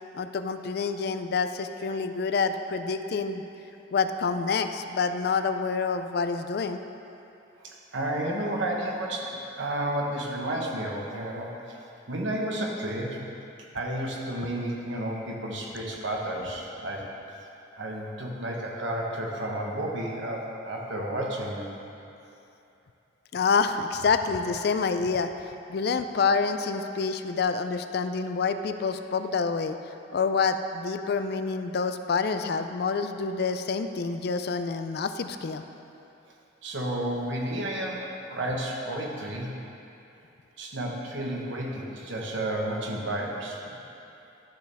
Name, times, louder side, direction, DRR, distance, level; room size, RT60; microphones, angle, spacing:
voice 1, 0.1-3.4 3.9-6.8 23.3-25.3 25.7-29.8 30.1-35.6, left 5 dB, 55° left, 9 dB, 0.3 m, -27 dB
voice 2, 7.6-13.2 13.7-17.0 17.8-21.7 36.6-38.0 38.3-39.5 40.6-43.8, right 1 dB, 75° right, -2 dB, 1.2 m, -32 dB
11.5 x 6.8 x 3.5 m, 2.8 s
head